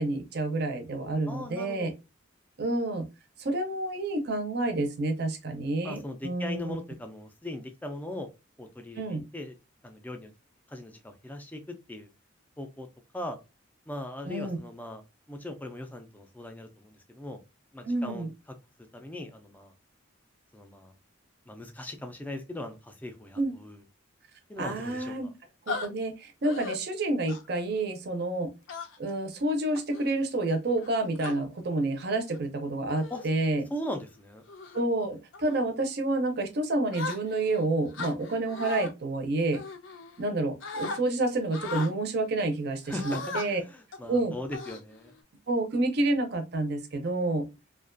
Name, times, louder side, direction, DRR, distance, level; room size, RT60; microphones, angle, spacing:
voice 1, 0.0-1.9 2.6-3.1 3.4-6.8 9.0-9.2 14.2-14.6 17.8-18.3 23.4-23.5 24.6-25.3 25.7-28.5 29.0-33.6 34.7-39.6 40.2-43.6 44.1-44.3 45.5-47.5, right 2 dB, 55° right, 6 dB, 0.5 m, -29 dB
voice 2, 1.3-1.9 5.8-8.3 8.6-9.6 9.8-10.3 10.7-12.1 12.6-12.9 13.1-13.4 13.9-15.0 15.3-17.4 17.7-18.3 18.9-19.7 20.5-20.9 21.5-23.8 24.5-25.3 33.1-33.3 33.7-34.4 42.8-45.1, left 1 dB, 10° left, 6 dB, 0.3 m, -39 dB
sound 1, 25.7-25.9 26.4-26.8 27.3-27.6 28.7-29.1 29.7-30.0 30.8-31.3 32.2-32.4 32.9-33.3 33.7-34.0 34.5-34.8 35.3-35.6 36.9-37.6 37.9-38.9 39.5-40.3 40.6-41.0 41.5-41.9 42.9-43.5 43.9-44.1 44.5-45.2, left 3 dB, 70° left, 0.4 m, -37 dB
2.4 x 2.2 x 2.4 m, 0.25 s
head